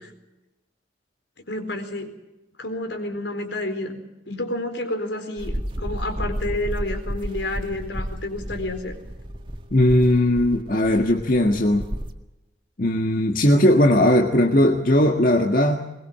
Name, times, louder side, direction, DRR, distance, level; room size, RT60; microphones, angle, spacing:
voice 1, 1.5-2.2 2.6-4.0 4.3-8.9, left 1 dB, 75° left, 6 dB, 4.3 m, -30 dB
sound 1, 5.4-12.1, equal, 25° right, 1.8 m, -32 dB
voice 2, 9.7-11.8 12.8-15.8, left 1 dB, 50° left, 3 dB, 1.7 m, -18 dB
22.0 x 21.0 x 7.5 m, 0.98 s
head